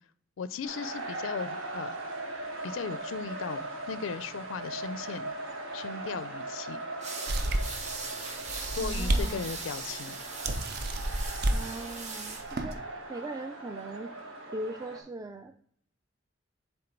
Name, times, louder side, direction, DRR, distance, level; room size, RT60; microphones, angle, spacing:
voice 1, 0.4-2.0 2.6-5.3 5.7-6.8 8.7-10.2, left 5 dB, 90° left, 0.4 m, -37 dB
sound 1, 0.6-15.0, right 2 dB, 85° right, 1.4 m, -40 dB
sound 2, 7.0-12.4, right 4 dB, 35° right, 1.2 m, -40 dB
sound 3, 7.3-7.8 8.4-9.3 9.7-9.8 10.4-11.6 12.3-12.8, right 1 dB, 55° right, 0.6 m, -30 dB
voice 2, 8.8-9.5 11.5-12.8 13.1-14.1 14.5-15.6, right 2 dB, 20° right, 0.3 m, -40 dB
7.7 x 3.5 x 4.4 m
head